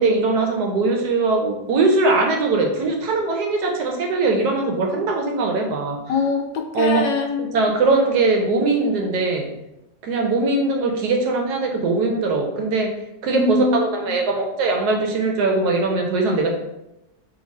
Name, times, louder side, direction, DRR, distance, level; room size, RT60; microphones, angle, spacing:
voice 1, 0.0-6.0 6.7-7.0 7.4-9.5 10.0-12.9 13.2-16.5, right 3 dB, 70° right, 2 dB, 1.1 m, -21 dB
voice 2, 6.1-7.7 13.3-13.8, left 4 dB, 80° left, 3 dB, 1.3 m, -23 dB
3.8 x 3.2 x 4.0 m, 0.90 s
omnidirectional pair, 2.0 m